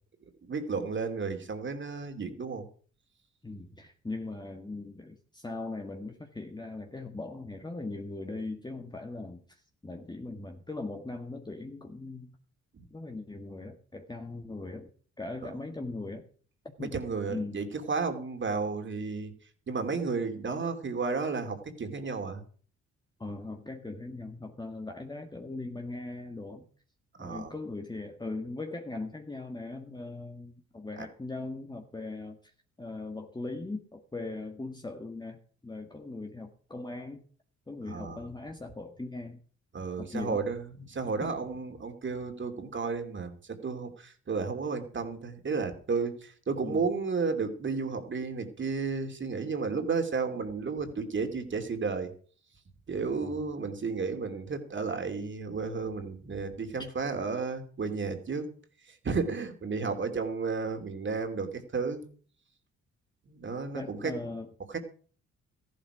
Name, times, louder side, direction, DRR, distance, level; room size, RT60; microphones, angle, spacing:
voice 1, 0.5-2.7 12.7-12.9 16.8-19.3 19.7-22.4 27.2-27.5 37.9-38.3 39.7-52.1 52.9-58.5 58.9-62.1 63.3-64.1 64.7-64.8, right 4 dB, 40° right, 6 dB, 2.9 m, -33 dB
voice 2, 3.4-12.3 12.9-14.9 15.2-16.3 16.6-17.0 17.3-17.6 23.2-26.6 27.2-32.4 32.8-37.2 37.7-39.4 40.0-40.4 41.2-41.3 46.6-46.9 53.2-53.4 63.7-64.5, left 2 dB, 15° left, 3 dB, 1.6 m, -39 dB
14.0 x 11.5 x 5.0 m, 0.43 s
cardioid pair, 90°, 30 cm